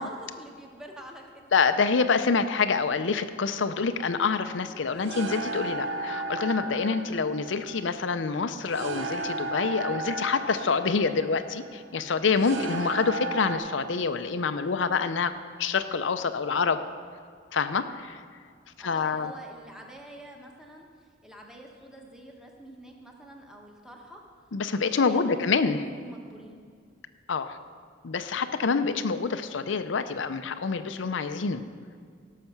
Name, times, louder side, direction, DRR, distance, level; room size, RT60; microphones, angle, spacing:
voice 1, 0.0-1.4 18.8-20.9 21.2-24.2 25.0-26.6 28.7-29.0, right 1 dB, 5° right, 0 dB, 1.4 m, -46 dB
voice 2, 1.5-16.8 17.5-18.2 18.8-19.3 24.5-25.8 27.3-27.6 28.0-31.6, left 5 dB, 70° left, 10 dB, 0.6 m, -26 dB
sound 1, 4.0-13.6, right 2 dB, 75° right, 0.8 m, -35 dB
17.0 x 6.6 x 5.9 m, 2.1 s
head